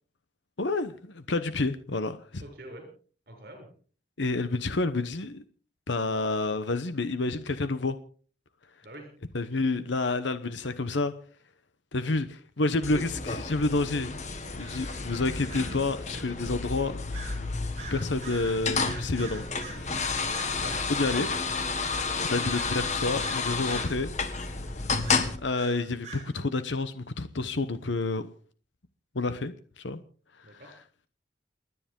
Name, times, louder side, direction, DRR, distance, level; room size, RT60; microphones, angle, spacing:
voice 1, 0.6-2.4 4.2-5.4 5.9-8.0 9.3-11.1 11.9-14.1 14.5-17.0 17.9-19.5 19.8-19.9 20.9-21.3 22.3-24.1 25.4-28.3 29.1-30.0, left 3 dB, 80° left, 1.0 m, -29 dB
voice 2, 2.4-2.9 3.3-3.7 8.8-9.1 20.5-20.9 22.2-22.4 30.4-30.8, right 1 dB, 55° right, 7.2 m, -45 dB
sound 1, 12.8-25.4, left 4 dB, 40° left, 1.5 m, -31 dB
sound 2, 14.6-15.9 17.1-17.5 17.8-21.3 22.5-24.0 25.0-26.3, right 3 dB, 35° right, 5.7 m, -44 dB
29.0 x 9.8 x 3.8 m
head